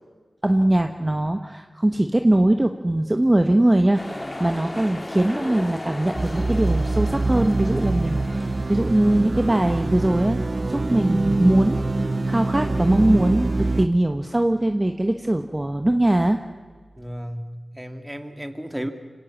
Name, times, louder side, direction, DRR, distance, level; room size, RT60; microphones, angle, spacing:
voice 1, 0.4-10.4 10.7-16.4, right 1 dB, 25° right, 6 dB, 1.1 m, -21 dB
sound 1, 3.9-9.3, left 1 dB, 25° left, 1.9 m, -35 dB
sound 2, 6.1-13.9, right 2 dB, 50° right, 0.9 m, -24 dB
voice 2, 17.0-18.9, equal, 5° right, 7 dB, 2.2 m, -33 dB
24.5 x 18.0 x 7.2 m, 1.5 s
cardioid pair, 45°, 0 cm